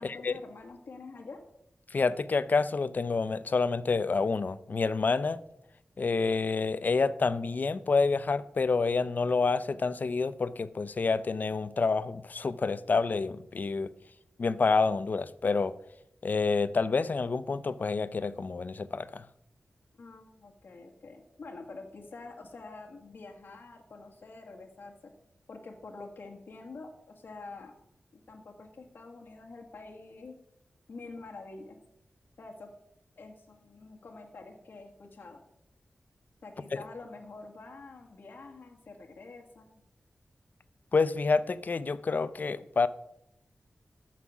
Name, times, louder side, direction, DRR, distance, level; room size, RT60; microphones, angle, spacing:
voice 1, 0.0-1.4 20.0-25.1 25.5-27.7 28.3-30.3 30.9-31.8 32.4-32.7 33.2-35.4 36.4-39.7, left 3 dB, 80° left, 1.7 m, -47 dB
voice 2, 1.9-5.4 6.0-13.9 14.4-15.7 16.2-19.2 40.9-42.9, left 4 dB, 55° left, 0.6 m, -28 dB
14.0 x 5.9 x 6.0 m
wide cardioid pair, 70°, 3 cm